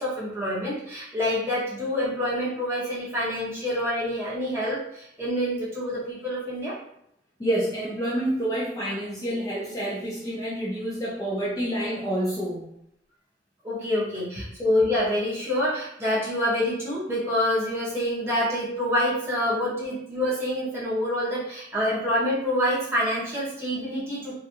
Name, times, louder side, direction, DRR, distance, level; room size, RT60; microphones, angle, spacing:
voice 1, 0.0-6.7 13.6-24.3, left 1 dB, 15° right, -8 dB, 0.8 m, -27 dB
voice 2, 7.4-12.7, right 1 dB, 20° left, -7 dB, 0.5 m, -28 dB
2.8 x 2.5 x 2.5 m, 0.76 s
head